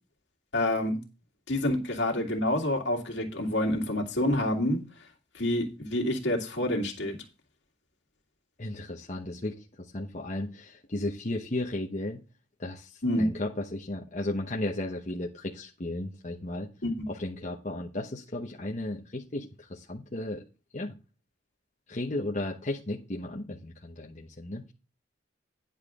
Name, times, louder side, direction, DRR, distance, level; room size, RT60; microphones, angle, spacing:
voice 1, 0.5-1.0 1.5-4.8 5.3-7.2 13.0-13.2 16.8-16.9, left 1 dB, 75° left, 2.3 m, -27 dB
voice 2, 8.6-12.2 12.6-16.7 17.1-20.4 20.7-20.9 21.9-24.7, left 1 dB, 40° left, 1.0 m, -35 dB
10.0 x 7.4 x 3.7 m
head